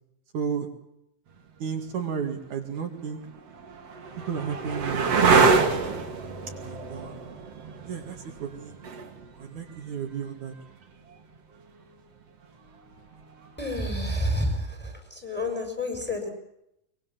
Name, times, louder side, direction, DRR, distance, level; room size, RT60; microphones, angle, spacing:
voice 1, 0.3-0.7 1.6-3.2 4.3-5.7 6.6-7.2 7.9-8.8 9.4-10.5, right 7 dB, 65° right, 4 dB, 3.4 m, -33 dB
sound 1, 2.1-2.2 3.0-10.6 12.9-13.5, right 4 dB, 50° right, 3.4 m, -26 dB
voice 2, 13.6-16.3, left 1 dB, 5° left, 5 dB, 5.7 m, -29 dB
24.0 x 22.0 x 7.4 m, 0.81 s
omnidirectional pair, 3.8 m